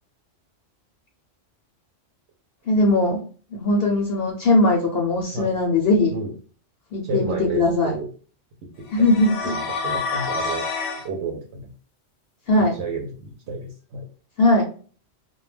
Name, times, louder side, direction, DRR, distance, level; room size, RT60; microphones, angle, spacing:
voice 1, 2.7-3.2 3.5-6.1 6.9-8.0 8.9-9.6 12.5-12.7 14.4-14.6, left 2 dB, 60° left, 0 dB, 0.8 m, -19 dB
voice 2, 7.0-8.1 8.8-9.1 9.4-10.6 11.0-11.7 12.7-14.1, right 4 dB, 70° right, 1 dB, 0.9 m, -31 dB
sound 1, 8.9-11.1, left 4 dB, 80° left, 1.0 m, -28 dB
2.2 x 2.2 x 3.2 m, 0.40 s
omnidirectional pair, 1.2 m